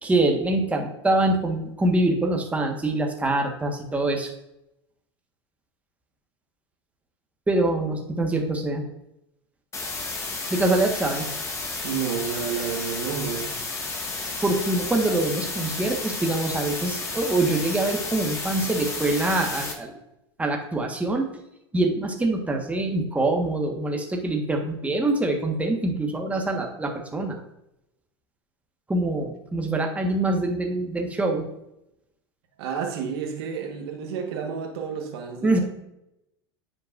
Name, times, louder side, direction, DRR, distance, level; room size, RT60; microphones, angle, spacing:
voice 1, 0.0-4.3 7.5-8.9 10.5-11.3 14.4-20.0 20.4-21.3 21.7-27.4 28.9-31.4 35.4-35.6, right 2 dB, 10° right, 2 dB, 1.4 m, -24 dB
sound 1, 9.7-19.7, left 3 dB, 20° left, 1.8 m, -32 dB
voice 2, 11.8-13.5 32.6-35.6, right 7 dB, 70° right, 3 dB, 1.4 m, -30 dB
9.6 x 6.3 x 2.6 m, 0.84 s
hypercardioid pair, 105°, 13 cm